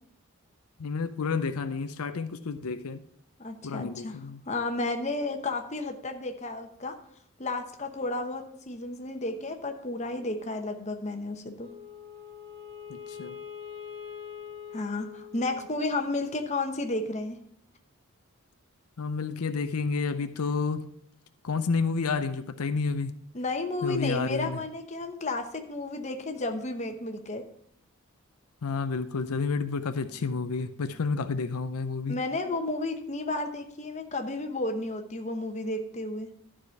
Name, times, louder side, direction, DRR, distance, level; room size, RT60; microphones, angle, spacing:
voice 1, 0.8-3.0 3.6-4.4 12.9-13.4 19.0-20.9 21.4-23.2 23.8-24.6 28.6-32.2, left 4 dB, 85° left, 0.6 m, -30 dB
voice 2, 3.4-4.2 4.5-7.0 7.4-11.7 14.7-17.4 23.3-27.4 32.1-36.3, left 2 dB, 30° left, 0.9 m, -32 dB
Wind instrument woodwind instrument, 11.6-16.0, left 7 dB, 20° right, 1.2 m, -43 dB
12.0 x 4.9 x 5.7 m
head